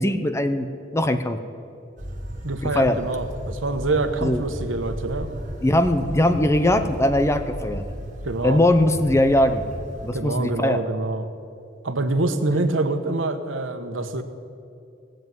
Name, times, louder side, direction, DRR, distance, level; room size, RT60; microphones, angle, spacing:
voice 1, 0.0-1.4 2.6-3.0 4.2-4.4 5.6-7.8 8.4-9.6 10.0-10.8, left 1 dB, 15° left, 9 dB, 0.7 m, -20 dB
sound 1, 2.0-10.1, equal, 40° right, 2.3 m, -35 dB
voice 2, 2.4-5.3 8.2-8.6 10.1-11.3 11.8-14.2, right 2 dB, 90° right, 7 dB, 1.2 m, -25 dB
18.5 x 7.7 x 9.3 m, 2.6 s
head